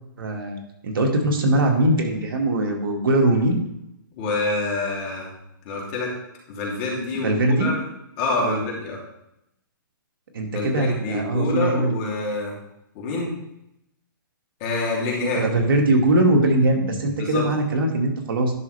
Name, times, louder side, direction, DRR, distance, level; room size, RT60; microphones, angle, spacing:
voice 1, 0.2-3.6 7.2-7.7 8.4-8.6 10.3-11.9 15.3-18.5, right 1 dB, 75° right, 2 dB, 2.0 m, -21 dB
voice 2, 4.1-5.3 5.6-6.1 6.5-7.8 8.2-9.0 10.5-12.5 12.9-13.3 14.6-15.5 17.1-17.4, left 2 dB, 35° left, -3 dB, 2.9 m, -26 dB
10.5 x 6.5 x 3.4 m, 0.83 s
hypercardioid pair, 150°, 12 cm